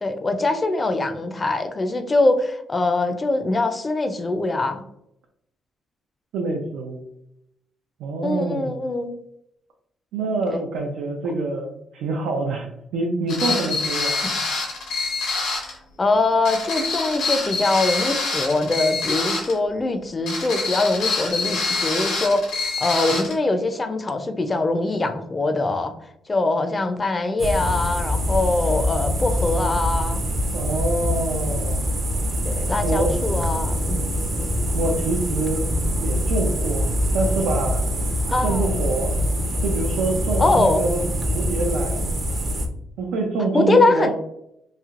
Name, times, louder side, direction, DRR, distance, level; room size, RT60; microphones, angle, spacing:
voice 1, 0.0-4.8 8.2-9.1 10.5-10.6 14.2-14.3 16.0-25.9 26.3-30.2 32.4-34.1 38.3-38.7 40.4-40.8 43.5-44.1, left 2 dB, 25° left, 7 dB, 0.4 m, -22 dB
voice 2, 6.3-7.0 8.0-8.8 10.1-12.7 12.9-14.1 30.5-31.8 32.8-33.2 34.7-35.6 36.0-37.8 38.4-39.1 39.6-42.1 43.0-44.1, right 3 dB, 85° right, 0 dB, 0.5 m, -26 dB
sound 1, 13.3-15.8 16.4-19.6 20.3-23.3, left 3 dB, 80° left, 1.3 m, -26 dB
sound 2, 27.4-42.7, equal, 35° right, 0.5 m, -24 dB
3.2 x 2.7 x 2.4 m, 0.78 s
cardioid pair, 90°, 0 cm